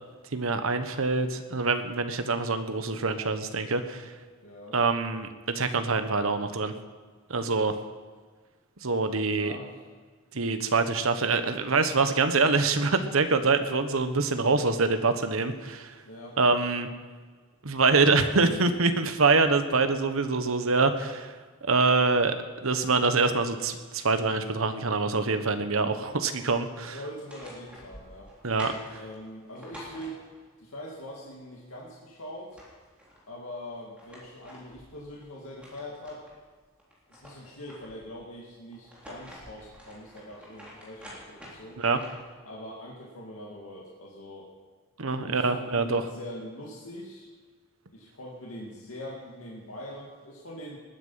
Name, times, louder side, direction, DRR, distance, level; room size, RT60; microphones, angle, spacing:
voice 1, 0.3-4.1 4.7-6.7 7.3-7.7 8.8-9.5 10.3-16.0 16.4-16.9 17.6-21.3 21.6-27.0 28.4-29.0 41.8-42.0 45.0-46.0, right 3 dB, 75° right, 8 dB, 1.2 m, -25 dB
voice 2, 4.4-4.8 9.4-9.8 16.0-16.4 26.8-28.3 29.0-30.2 30.6-32.6 33.3-36.3 37.1-41.8 42.4-44.5 45.3-47.3 47.9-50.8, equal, 85° left, -3 dB, 2.3 m, -42 dB
sound 1, 27.1-30.6 32.0-32.1 32.4-33.2 33.7-36.4 36.8-38.1 38.7-42.3, equal, 5° right, 3.5 m, -48 dB
20.0 x 9.8 x 5.7 m, 1.5 s
head